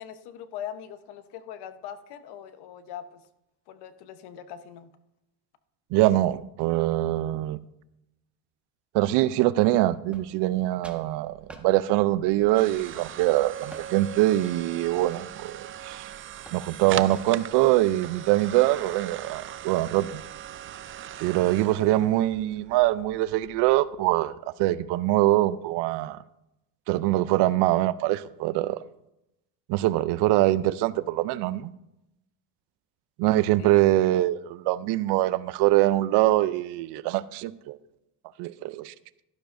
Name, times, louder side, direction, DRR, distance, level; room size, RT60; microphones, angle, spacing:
voice 1, 0.0-3.2 3.7-4.9 33.6-34.1, left 9 dB, 65° left, 1.1 m, -41 dB
voice 2, 5.9-7.6 8.9-16.1 16.5-20.2 21.2-26.2 26.9-28.8 29.7-31.7 33.2-37.8 38.4-38.9, right 16 dB, 70° right, 0.6 m, -23 dB
sound 1, 10.1-10.6 10.8-11.1 11.5-11.7 12.3-12.6 12.9-13.9 14.4-16.0 16.5-16.7 17.1-17.5, right 1 dB, 5° right, 1.4 m, -49 dB
sound 2, 11.0-24.1, right 11 dB, 30° right, 0.4 m, -40 dB
12.5 x 12.0 x 2.6 m
supercardioid pair, 95°, 42 cm